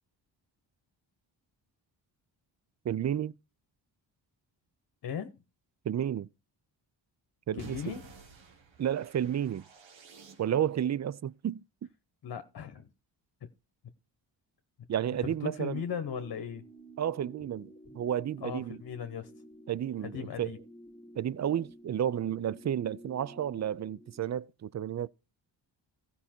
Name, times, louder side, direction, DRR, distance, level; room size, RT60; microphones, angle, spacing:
voice 1, 2.8-3.3 5.8-6.3 7.5-7.9 8.8-9.6 10.4-11.6 14.9-15.8 17.0-18.8 19.7-20.5 21.2-25.1, right 10 dB, 40° right, 0.5 m, -31 dB
voice 2, 5.0-5.3 7.5-8.1 12.2-12.9 15.2-16.6 18.4-19.3 20.0-20.6, left 7 dB, 55° left, 1.1 m, -37 dB
sound 1, 7.6-10.8, right 5 dB, 85° right, 1.7 m, -53 dB
sound 2, 15.7-24.4, right 1 dB, 5° left, 2.1 m, -52 dB
14.5 x 5.5 x 4.4 m
cardioid pair, 75°, 45 cm